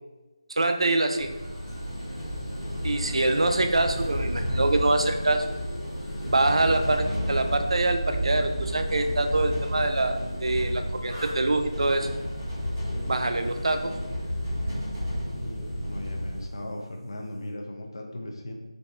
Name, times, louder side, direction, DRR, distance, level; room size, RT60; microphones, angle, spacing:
voice 1, 0.5-1.3 2.8-5.5 6.2-12.1 13.1-13.9, right 2 dB, 65° right, 6 dB, 0.4 m, -25 dB
sound 1, 1.1-16.4, equal, 30° right, 1.4 m, -31 dB
voice 2, 12.8-13.2 15.3-18.5, left 1 dB, 45° left, 2 dB, 0.5 m, -38 dB
3.9 x 3.6 x 2.3 m, 1.2 s
figure-of-eight pair, 170°, 3 cm